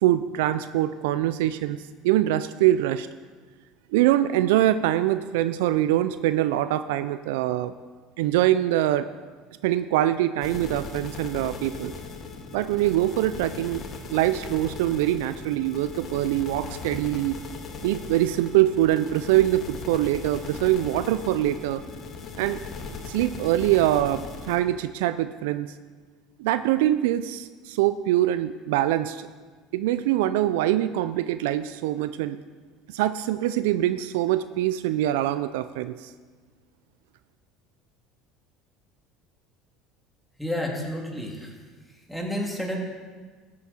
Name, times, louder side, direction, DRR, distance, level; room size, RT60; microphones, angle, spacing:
voice 1, 0.0-3.1 3.9-7.7 8.2-9.1 9.6-11.9 12.5-13.8 14.1-17.4 17.8-21.8 22.4-22.6 23.1-25.7 26.4-29.3 29.7-32.4 32.9-36.1, right 13 dB, 75° right, 13 dB, 0.4 m, -24 dB
sound 1, 10.4-24.6, left 4 dB, 50° left, 1.8 m, -38 dB
voice 2, 40.4-41.6 41.9-42.8, left 1 dB, ahead, -1 dB, 2.8 m, -30 dB
14.0 x 8.7 x 4.3 m, 1.5 s
hypercardioid pair, 75°, 0 cm